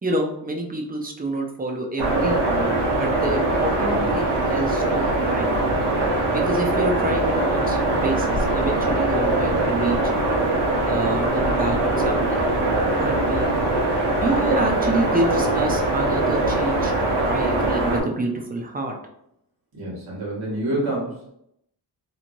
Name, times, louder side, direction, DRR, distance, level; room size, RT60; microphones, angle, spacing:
voice 1, 0.0-5.5 6.3-10.0 10.8-11.8 12.0-12.4 12.9-13.5 14.1-18.9, right 1 dB, 20° right, 2 dB, 0.5 m, -28 dB
sound 1, 2.0-18.0, right 2 dB, 75° right, 1.0 m, -22 dB
voice 2, 19.7-21.3, right 1 dB, 60° right, -6 dB, 1.5 m, -27 dB
2.9 x 2.7 x 2.6 m, 0.77 s
cardioid pair, 105°, 43 cm